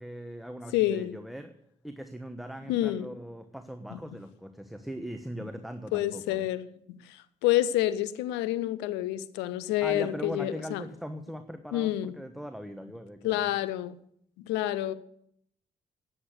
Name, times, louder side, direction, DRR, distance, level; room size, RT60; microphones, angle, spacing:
voice 1, 0.0-1.5 1.8-6.5 9.8-13.4, equal, ahead, 1.2 m, -40 dB
voice 2, 0.7-1.2 2.7-3.1 3.9-4.0 5.9-10.8 11.7-12.2 13.2-13.9 14.4-14.9, left 14 dB, 85° left, 0.6 m, -28 dB
10.0 x 8.5 x 8.0 m
hypercardioid pair, 45°, 17 cm